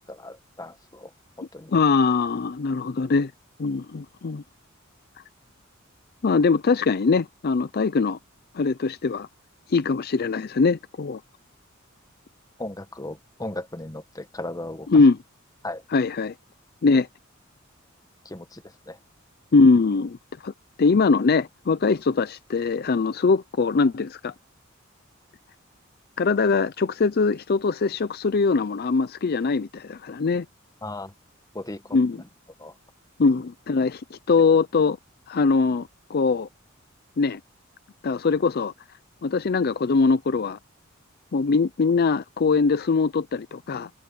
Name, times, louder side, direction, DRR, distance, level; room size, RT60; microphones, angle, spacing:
voice 1, 0.1-1.1 1.4-1.7 12.6-14.9 15.6-15.8 18.2-19.0 30.8-31.1 31.5-32.0 32.6-32.7, left 2 dB, 20° left, 1.2 m, -36 dB
voice 2, 1.7-3.3 3.6-4.4 6.2-8.2 8.5-9.3 9.7-11.2 14.9-15.2 15.9-16.3 16.8-17.1 19.5-20.2 20.4-20.5 20.8-24.3 26.2-30.5 31.9-32.2 33.2-35.0 35.3-36.5 37.2-37.4 38.0-38.7 39.2-40.6 41.3-43.9, left 4 dB, 50° left, 0.5 m, -22 dB
open air
head